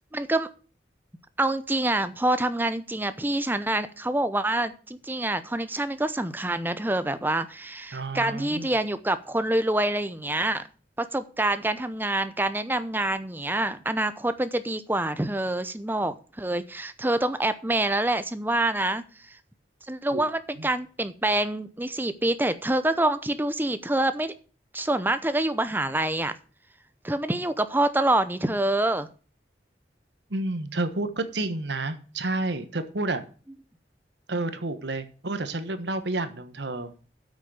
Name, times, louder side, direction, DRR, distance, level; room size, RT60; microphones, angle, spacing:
voice 1, 0.1-0.5 1.4-10.7 11.0-19.4 19.9-24.3 24.7-26.3 27.0-29.1, right 1 dB, 10° right, 12 dB, 0.7 m, -26 dB
voice 2, 7.9-8.7 20.1-20.3 20.6-20.7 30.3-33.2 34.3-36.9, right 2 dB, 80° right, 10 dB, 1.3 m, -30 dB
8.4 x 6.4 x 8.4 m, 0.38 s
head